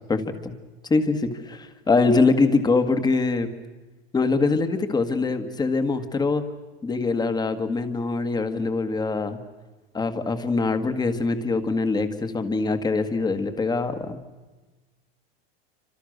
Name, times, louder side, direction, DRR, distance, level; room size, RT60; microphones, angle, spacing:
voice 1, 0.1-0.5 0.9-3.5 4.1-6.4 6.8-9.4 9.9-14.2, left 3 dB, 15° left, 9 dB, 1.8 m, -23 dB
28.0 x 26.0 x 6.6 m, 1.2 s
supercardioid pair, 145°, 30 cm